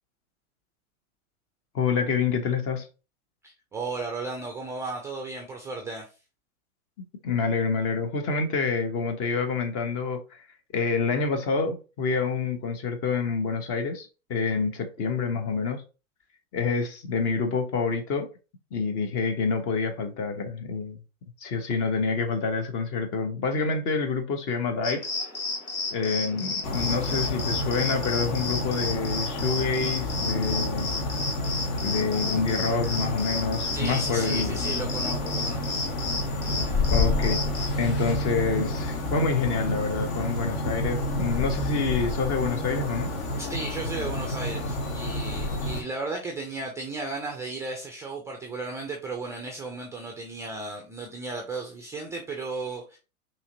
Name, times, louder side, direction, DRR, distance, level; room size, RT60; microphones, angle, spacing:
voice 1, 1.7-2.9 7.2-10.4 10.7-15.8 16.5-18.3 18.7-21.0 21.4-25.1 25.9-30.9 31.8-34.6 36.9-37.5 37.8-43.1, left 5 dB, 30° left, 1.0 m, -27 dB
voice 2, 3.4-6.1 33.7-35.6 36.3-36.9 43.4-53.0, right 3 dB, 5° right, 0.4 m, -35 dB
sound 1, 24.8-37.7, left 3 dB, 85° left, 1.5 m, -33 dB
sound 2, 26.6-45.8, left 2 dB, 50° left, 1.5 m, -29 dB
5.5 x 3.1 x 2.7 m
figure-of-eight pair, 100°, 42 cm